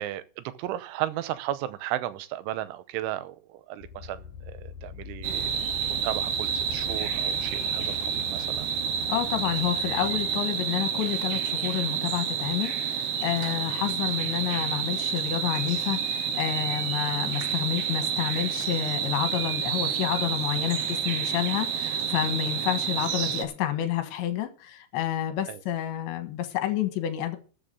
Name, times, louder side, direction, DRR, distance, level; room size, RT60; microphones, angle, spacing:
voice 1, 0.0-8.7 13.6-13.8 25.5-25.6, right 13 dB, 90° right, 3.2 m, -35 dB
sound 1, 3.8-10.4, left 6 dB, 55° left, 2.7 m, -44 dB
sound 2, 5.2-23.5, right 8 dB, 70° right, 3.0 m, -29 dB
voice 2, 9.1-27.4, left 11 dB, 75° left, 3.6 m, -29 dB
13.0 x 6.6 x 6.8 m
omnidirectional pair, 5.5 m